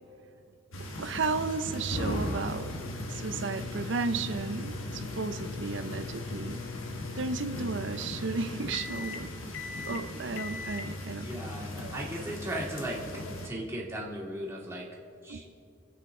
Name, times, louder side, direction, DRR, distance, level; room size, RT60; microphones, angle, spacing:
sound 1, 0.7-13.5, left 1 dB, 85° left, 1.4 m, -38 dB
voice 1, 1.0-2.7 3.1-6.6 7.2-9.3 9.8-11.3 11.8-12.0 15.3-15.4, right 4 dB, 65° right, 11 dB, 0.6 m, -34 dB
sound 2, 2.3-12.6, left 4 dB, 65° left, 0.7 m, -42 dB
voice 2, 11.2-13.0 13.4-14.9 15.2-15.4, right 1 dB, 15° right, -4 dB, 2.0 m, -37 dB
24.0 x 8.2 x 3.7 m, 2.5 s
head